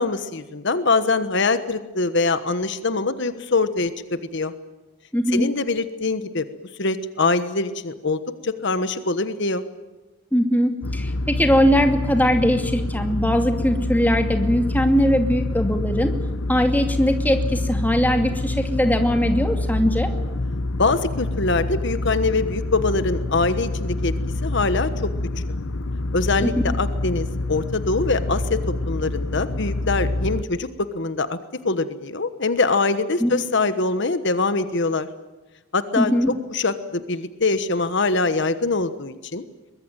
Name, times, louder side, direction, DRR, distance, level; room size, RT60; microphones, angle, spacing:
voice 1, 0.0-4.5 5.3-6.4 6.8-9.6 20.8-24.1 24.4-25.1 26.1-31.4 31.6-35.1 35.7-36.1 36.5-39.5, left 3 dB, 60° left, 11 dB, 1.3 m, -23 dB
voice 2, 5.1-5.5 10.3-16.1 16.5-20.1 26.4-26.5 33.2-33.3 36.0-36.3, equal, 10° left, 5 dB, 2.4 m, -20 dB
sound 1, 10.8-30.4, left 2 dB, 85° left, 1.0 m, -26 dB
23.5 x 21.0 x 9.1 m, 1.2 s
head